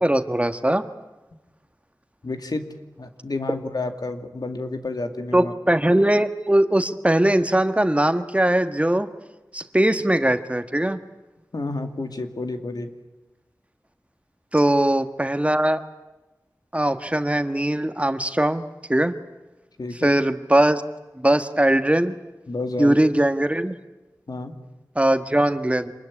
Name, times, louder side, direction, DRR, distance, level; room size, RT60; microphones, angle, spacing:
voice 1, 0.0-0.8 5.3-9.1 9.5-11.0 14.5-15.8 16.7-18.6 18.9-19.1 19.9-20.8 21.2-22.1 22.8-23.7 24.9-25.9, right 1 dB, 20° right, 9 dB, 1.5 m, -20 dB
voice 2, 2.2-2.7 3.0-5.5 11.5-12.9 19.8-20.2 22.5-23.0 24.3-24.6, left 2 dB, 85° left, 6 dB, 2.3 m, -30 dB
27.0 x 21.0 x 9.8 m, 1.1 s
wide cardioid pair, 60°, 7 cm